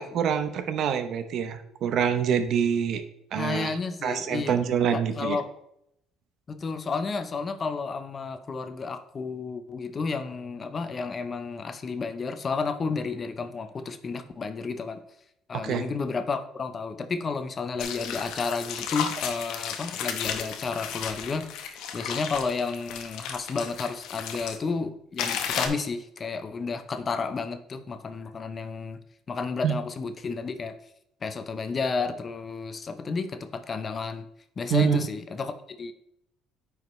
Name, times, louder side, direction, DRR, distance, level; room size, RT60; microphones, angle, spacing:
voice 1, 0.0-3.0 3.3-3.8 4.0-5.4 15.5-15.8 29.6-29.7 34.7-35.0, right 8 dB, 60° right, 10 dB, 0.7 m, -26 dB
voice 2, 3.4-4.6 4.9-5.4 6.5-15.0 15.5-29.0 29.3-30.8 31.2-34.3 34.6-35.9, left 4 dB, 35° left, 10 dB, 0.7 m, -32 dB
sound 1, 17.8-24.6 25.2-25.7, left 8 dB, 75° left, 0.9 m, -34 dB
9.3 x 4.9 x 3.2 m, 0.75 s
cardioid pair, 100°, 0 cm